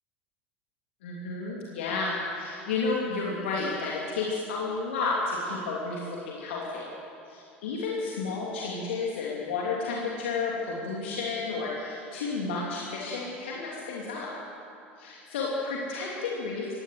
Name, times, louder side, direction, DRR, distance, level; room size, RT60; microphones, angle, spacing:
voice 1, 1.0-6.9 7.3-14.3 15.0-16.7, left 4 dB, 70° left, -4 dB, 3.0 m, -31 dB
20.5 x 16.5 x 7.7 m, 2.6 s
figure-of-eight pair, 75°, 7 cm